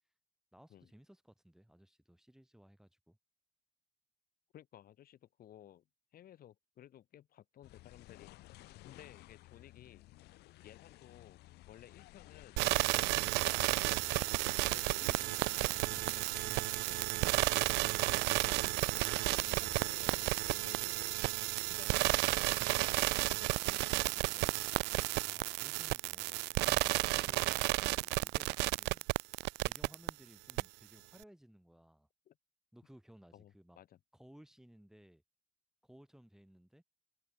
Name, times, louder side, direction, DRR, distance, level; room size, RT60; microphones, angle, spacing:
voice 1, 0.5-3.2 25.1-29.1 29.6-32.1 32.7-33.8 34.1-35.2 35.8-36.8, equal, 5° right, 3.5 m, -60 dB
voice 2, 4.5-5.8 6.1-8.3 8.8-10.1 10.6-11.4 11.7-12.6 12.9-14.3 14.6-15.8 16.4-21.2 21.7-24.6 32.3-32.4 33.3-34.0, left 11 dB, 60° left, 4.3 m, -57 dB
sound 1, 7.6-20.8, left 18 dB, 80° left, 0.7 m, -56 dB
sound 2, 12.6-30.1 30.5-30.6, right 23 dB, 90° right, 0.4 m, -32 dB
cardioid pair, 110°, 17 cm